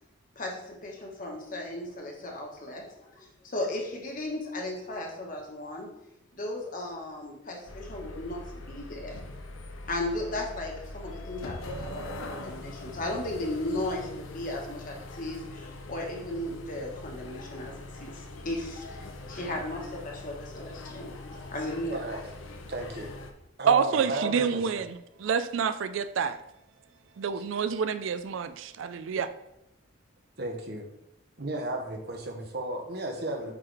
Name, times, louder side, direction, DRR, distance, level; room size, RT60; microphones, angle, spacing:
voice 1, 0.4-2.8 3.2-5.9 6.3-9.2 9.8-22.0, left 1 dB, 40° left, 1.2 m, -36 dB
sound 1, 7.7-23.3, left 2 dB, 80° left, 0.7 m, -42 dB
voice 2, 22.7-23.1 23.6-24.8 27.3-27.4 30.4-30.8 31.4-33.5, right 1 dB, 55° right, 1.0 m, -34 dB
voice 3, 23.7-26.4 27.2-29.3, right 6 dB, 75° right, 0.4 m, -27 dB
8.3 x 3.9 x 3.3 m
head